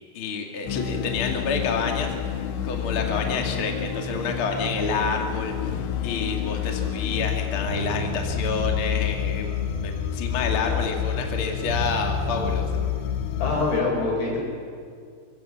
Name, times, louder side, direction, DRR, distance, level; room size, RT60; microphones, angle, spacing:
voice 1, 0.1-12.7, left 5 dB, 40° left, 2 dB, 2.6 m, -29 dB
sound 1, 0.7-13.8, left 9 dB, 90° left, 3.4 m, -29 dB
sound 2, 5.7-6.7 7.1-8.9 9.2-10.9 11.2-13.5, right 2 dB, 35° right, 5.1 m, -35 dB
voice 2, 13.4-14.4, left 3 dB, 75° left, -2 dB, 7.3 m, -26 dB
24.0 x 24.0 x 7.3 m, 2.2 s
omnidirectional pair, 4.7 m